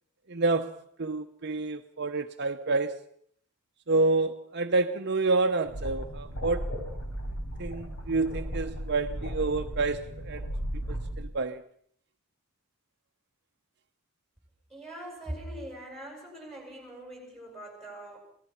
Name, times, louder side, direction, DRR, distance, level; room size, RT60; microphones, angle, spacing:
voice 1, 0.3-3.0 3.9-6.7 7.6-10.5 10.9-11.7, right 3 dB, 50° right, 0.9 m, -28 dB
sound 1, 5.7-11.2, equal, 75° left, 5.8 m, -35 dB
voice 2, 14.7-18.2, right 1 dB, ahead, 7.9 m, -42 dB
26.0 x 19.0 x 5.8 m
head